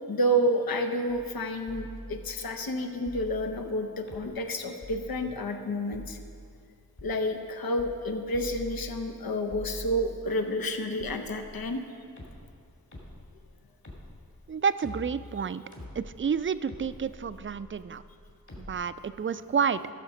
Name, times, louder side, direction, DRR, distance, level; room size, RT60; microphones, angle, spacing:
voice 1, 0.1-6.2 7.0-11.8, equal, 85° left, 6 dB, 0.8 m, -30 dB
sound 1, 1.1-1.4 1.7-2.5 3.1-3.7 4.1-4.5 4.8-5.4 5.9-6.5 7.0-7.1 7.8-8.1 8.3-9.2 9.5-10.4 11.0-11.8 12.2-18.7, equal, 55° left, 2.6 m, -45 dB
voice 2, 14.5-15.6 15.9-18.0 18.6-19.9, right 6 dB, 35° right, 14 dB, 0.4 m, -29 dB
13.5 x 6.5 x 5.3 m, 2.3 s
cardioid pair, 40°, 35 cm